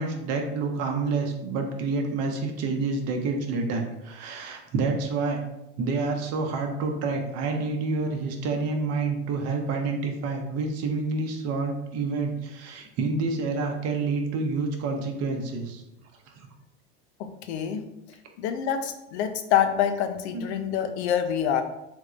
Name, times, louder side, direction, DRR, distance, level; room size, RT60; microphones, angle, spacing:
voice 1, 0.0-5.4 5.8-15.8 20.3-20.5, right 3 dB, 45° right, 3 dB, 0.7 m, -28 dB
voice 2, 17.2-17.8 18.4-21.6, left 9 dB, 70° left, 7 dB, 0.5 m, -26 dB
3.5 x 3.1 x 2.5 m, 0.88 s
supercardioid pair, 110°, 34 cm